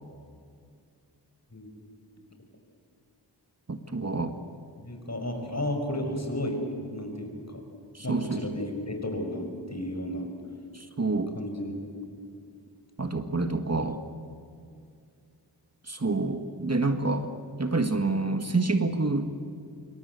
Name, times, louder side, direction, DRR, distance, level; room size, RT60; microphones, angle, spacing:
voice 1, 3.7-4.3 7.9-8.5 10.7-11.3 13.0-14.0 15.8-17.3 17.6-19.3, right 3 dB, 35° right, 7 dB, 1.7 m, -28 dB
voice 2, 4.8-6.6 6.9-7.3 8.0-10.3 11.4-12.0, left 1 dB, 40° left, 4 dB, 6.0 m, -33 dB
26.0 x 24.0 x 8.3 m, 2.3 s
cardioid pair, 40°, 42 cm